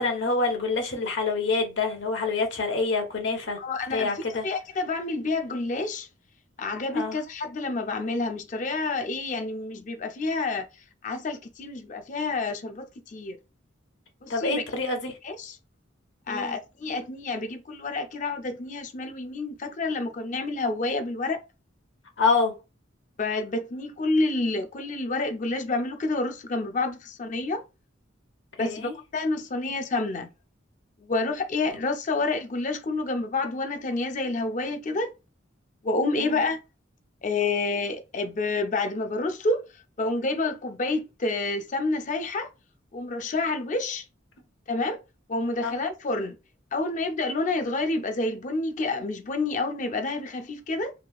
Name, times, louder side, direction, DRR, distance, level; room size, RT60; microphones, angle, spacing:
voice 1, 0.0-3.6 3.9-4.5 6.9-7.2 14.3-15.1 16.3-16.6 22.2-22.5 28.6-28.9 36.2-36.4 45.6-45.7, left 3 dB, 65° left, 0.9 m, -26 dB
voice 2, 3.6-4.1 4.4-6.1 6.6-10.7 11.0-13.4 14.2-14.6 15.2-15.6 16.3-21.4 23.2-27.6 28.6-30.3 31.1-35.1 35.8-36.6 37.2-39.6 40.0-42.5 42.9-44.0 44.7-45.0 45.3-46.3 46.7-50.9, left 3 dB, 40° left, 0.5 m, -28 dB
3.1 x 2.8 x 2.3 m
head